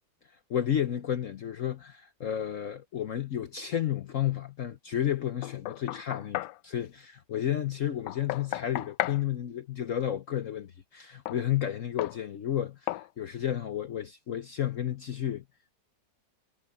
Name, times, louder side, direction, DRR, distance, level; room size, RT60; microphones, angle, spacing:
voice 1, 0.5-15.4, left 10 dB, 55° left, 1.0 m, -32 dB
Knock, 5.4-6.6 8.1-9.2 11.3-11.4 12.0-12.2 12.9-13.1, left 15 dB, 80° left, 1.2 m, -34 dB
omnidirectional pair, 1.9 m